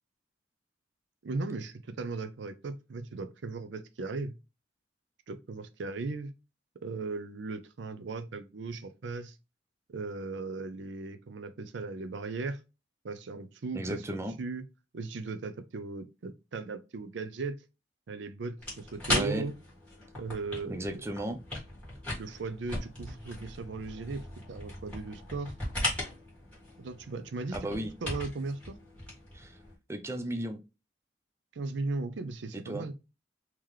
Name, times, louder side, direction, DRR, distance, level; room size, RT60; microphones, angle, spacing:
voice 1, 1.2-4.3 5.3-6.3 6.8-9.4 9.9-12.6 13.0-14.6 14.9-17.6 18.1-19.6 20.2-21.0 22.2-25.5 26.8-27.7 28.0-28.8 31.5-32.9, right 3 dB, 75° right, 0.5 m, -37 dB
voice 2, 13.7-14.4 19.1-19.5 20.7-21.4 27.5-27.9 29.3-29.6 29.9-30.6 32.5-32.9, right 1 dB, 15° right, 0.4 m, -35 dB
sound 1, 18.6-29.7, left 1 dB, 5° left, 1.8 m, -38 dB
3.8 x 2.9 x 3.1 m
head